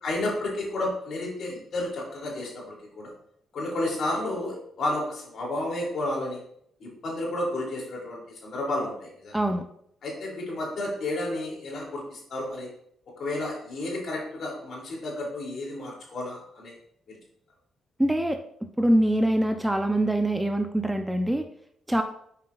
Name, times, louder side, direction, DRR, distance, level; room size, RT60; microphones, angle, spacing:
voice 1, 0.0-3.1 3.5-6.4 6.8-9.4 10.0-12.7 13.2-16.7 17.1-17.2, left 1 dB, 50° left, -2 dB, 3.4 m, -31 dB
voice 2, 9.3-9.6 18.0-18.4 18.8-21.5 21.9-22.0, right 1 dB, 5° right, 6 dB, 0.8 m, -24 dB
9.5 x 7.5 x 2.6 m, 0.69 s
figure-of-eight pair, 40°, 0 cm